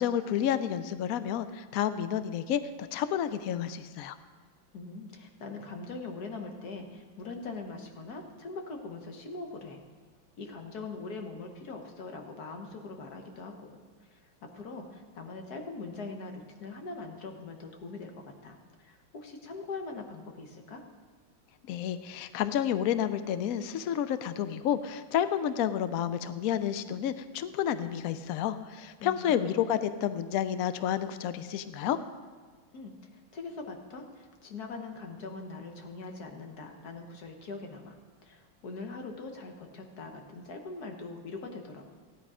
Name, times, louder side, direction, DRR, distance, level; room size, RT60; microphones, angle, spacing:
voice 1, 0.0-4.2 21.7-32.0, left 10 dB, 85° left, 12 dB, 0.7 m, -30 dB
voice 2, 4.7-9.8 10.4-13.8 14.1-20.8 29.0-29.6 32.7-41.8, left 3 dB, 55° left, 3 dB, 1.7 m, -42 dB
15.5 x 10.5 x 4.9 m, 1.5 s
omnidirectional pair, 2.1 m